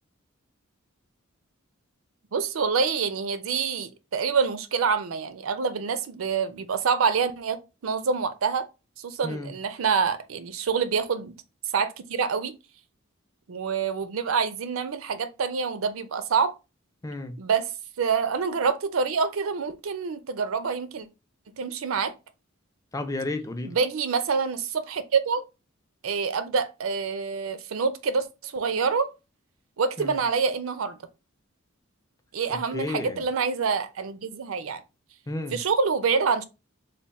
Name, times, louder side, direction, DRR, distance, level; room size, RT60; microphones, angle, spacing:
voice 1, 2.3-8.7 9.0-11.3 11.7-12.5 13.5-16.5 17.4-17.7 18.0-21.1 21.5-22.1 23.6-25.4 26.0-29.1 29.8-31.0 32.3-34.8 35.5-36.4, right 5 dB, 80° right, 0.5 m, -26 dB
voice 2, 17.0-17.4 22.9-23.8 30.0-30.2 32.7-33.2 35.3-35.6, left 2 dB, 15° left, 0.4 m, -32 dB
3.4 x 2.2 x 4.1 m
head